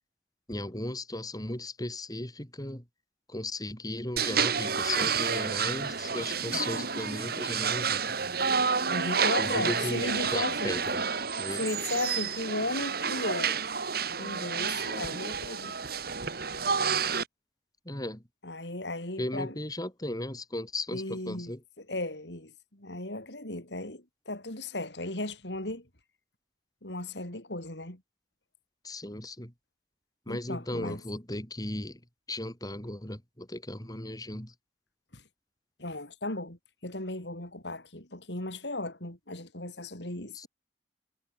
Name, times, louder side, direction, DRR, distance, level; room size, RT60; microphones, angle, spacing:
voice 1, 0.5-2.8 3.3-8.1 9.4-10.0 10.3-11.1 11.4-11.6 17.8-18.2 19.2-21.6 28.8-29.5 30.3-32.0 32.3-34.5 40.3-40.5, left 1 dB, 20° left, 4.7 m, -36 dB
sound 1, 4.2-17.2, right 6 dB, 60° right, 4.4 m, -30 dB
voice 2, 8.9-10.8 11.5-13.6 14.2-15.8 18.4-19.6 20.9-21.5 21.8-25.9 26.8-28.0 30.3-31.0 35.1-35.2 35.8-40.5, left 2 dB, 80° left, 6.3 m, -36 dB
head